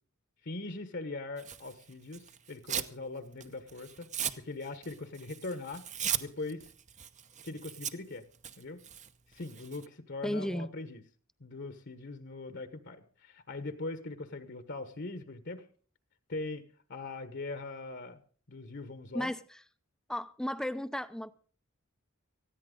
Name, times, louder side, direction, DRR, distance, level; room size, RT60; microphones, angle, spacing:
voice 1, 0.4-4.1 4.3-5.8 6.2-6.7 7.4-8.2 8.6-8.8 9.3-11.0 11.4-15.7 16.3-16.6 16.9-18.2 18.5-19.3, left 2 dB, 55° left, 1.3 m, -41 dB
Tearing, 1.4-3.0 3.3-9.9, right 9 dB, 35° right, 0.9 m, -38 dB
voice 2, 10.2-10.7 19.1-19.6 20.1-21.3, equal, 5° left, 0.6 m, -34 dB
19.5 x 14.5 x 3.9 m
head